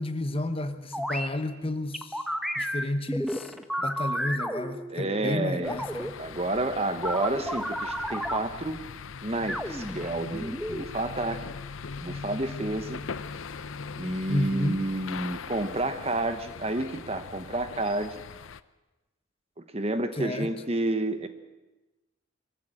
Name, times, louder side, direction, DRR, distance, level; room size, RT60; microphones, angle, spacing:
voice 1, 0.0-2.2 2.6-6.2 14.3-14.8 20.2-20.5, left 1 dB, 25° left, 9 dB, 1.0 m, -31 dB
sound 1, 0.9-1.3 1.9-5.1 5.6-6.1 7.0-8.4 9.5-10.8, equal, ahead, 0.9 m, -32 dB
voice 2, 4.9-5.8 6.2-8.8 9.2-11.4 12.0-13.1 14.0-18.2 19.6-21.3, right 2 dB, 30° right, 10 dB, 1.1 m, -30 dB
sound 2, 5.6-18.6, left 5 dB, 70° left, 0.6 m, -40 dB
23.0 x 14.5 x 8.8 m, 1.1 s
head